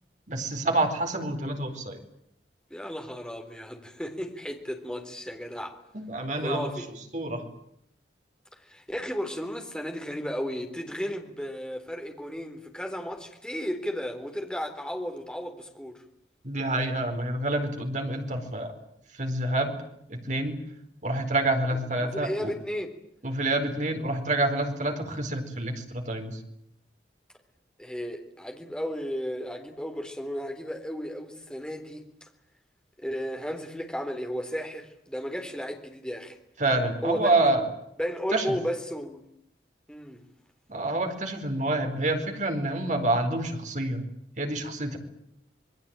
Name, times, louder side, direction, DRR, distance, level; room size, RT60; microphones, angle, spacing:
voice 1, 0.3-2.0 5.9-6.7 7.1-7.5 16.4-18.7 19.1-19.8 20.1-20.6 21.0-22.5 23.2-26.4 36.6-37.7 38.3-38.6 40.7-44.0 44.4-45.0, right 2 dB, 45° right, 4 dB, 4.4 m, -27 dB
voice 2, 2.7-5.8 6.4-6.9 8.5-16.0 22.0-22.9 27.8-32.3 33.0-36.4 37.0-37.6 38.0-39.2 39.9-40.2, equal, 5° left, 4 dB, 3.6 m, -34 dB
27.5 x 21.0 x 8.9 m, 0.77 s
head